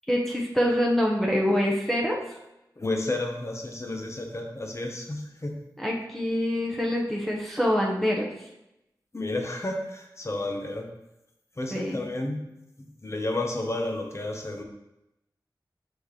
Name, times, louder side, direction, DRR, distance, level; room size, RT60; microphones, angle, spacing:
voice 1, 0.1-2.2 5.8-8.3 11.7-12.0, equal, 5° left, -3 dB, 1.0 m, -25 dB
voice 2, 2.8-5.6 9.1-10.9 11.6-12.4 13.0-14.6, left 2 dB, 35° left, 2 dB, 1.0 m, -31 dB
6.3 x 5.1 x 3.2 m, 0.89 s
wide cardioid pair, 65°, 8 cm